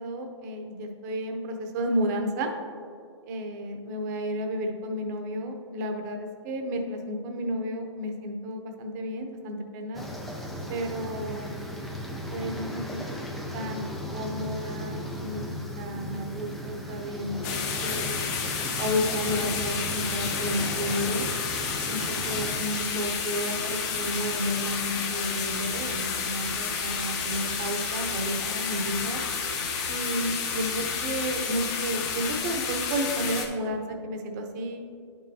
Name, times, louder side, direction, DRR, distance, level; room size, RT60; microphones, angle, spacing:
voice 1, 0.0-2.5 3.3-10.0 10.7-11.6 12.3-13.2 13.5-13.9 14.1-15.5 15.7-18.3 18.8-21.3 21.9-29.2 29.9-34.8, equal, 40° right, 4 dB, 0.9 m, -32 dB
sound 1, 9.9-22.6, equal, ahead, 0.4 m, -36 dB
sound 2, 17.4-33.5, left 5 dB, 35° left, 1.0 m, -31 dB
10.5 x 5.4 x 2.8 m, 2.4 s
hypercardioid pair, 140°, 15 cm